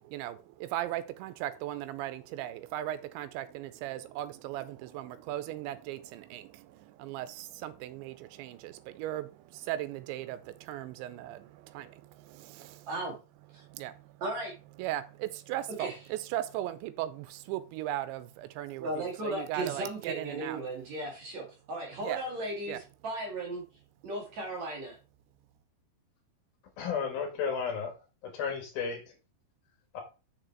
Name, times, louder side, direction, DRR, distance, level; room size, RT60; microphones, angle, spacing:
voice 1, 0.0-13.0 13.5-13.9 14.8-20.6 22.0-22.2 22.7-22.8, right 13 dB, 85° right, 3.0 m, -38 dB
voice 2, 14.2-14.5 15.8-15.9 18.8-22.8 23.0-23.6 24.0-25.0, right 2 dB, 50° right, 2.6 m, -36 dB
voice 3, 26.8-27.9 28.3-29.0 29.9-30.0, left 6 dB, 60° left, 3.0 m, -32 dB
6.9 x 6.5 x 4.5 m
omnidirectional pair, 5.2 m